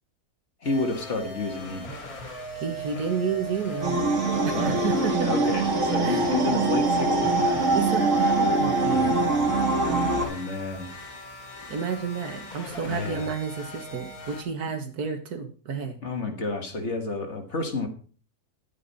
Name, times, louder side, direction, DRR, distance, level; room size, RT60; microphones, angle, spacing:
sound 1, 0.6-14.4, right 1 dB, 65° left, 2.8 m, -39 dB
voice 1, 0.6-2.2 4.5-4.9 5.2-7.7 10.2-10.9 12.8-13.3 16.0-17.9, left 3 dB, 45° left, 5 dB, 1.9 m, -30 dB
voice 2, 2.5-4.0 4.4-5.3 6.0-6.3 7.7-9.3 11.7-16.0, right 6 dB, 70° right, 6 dB, 1.9 m, -31 dB
sound 2, 3.8-10.3, right 2 dB, 50° right, 2.0 m, -23 dB
11.5 x 9.0 x 4.2 m, 0.40 s
omnidirectional pair, 1.7 m